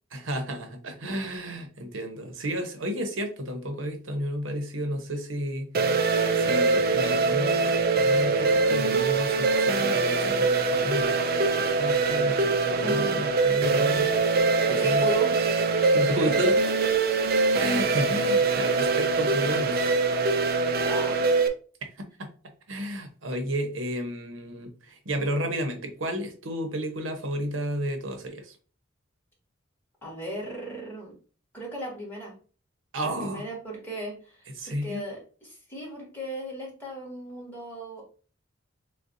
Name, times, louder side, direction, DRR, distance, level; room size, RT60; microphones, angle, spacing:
voice 1, 0.1-14.1 14.7-15.1 15.8-16.8 17.5-20.0 22.0-22.3 22.7-28.6 32.9-33.5 34.5-35.0, equal, 85° right, 5 dB, 1.0 m, -32 dB
sound 1, 5.7-21.5, right 3 dB, 50° right, 0.5 m, -23 dB
voice 2, 12.8-13.2 14.6-15.4 20.8-21.2 30.0-31.1 31.5-32.4 33.0-35.2 35.5-38.0, right 1 dB, 10° left, -4 dB, 1.9 m, -36 dB
6.5 x 2.3 x 2.7 m, 0.38 s
head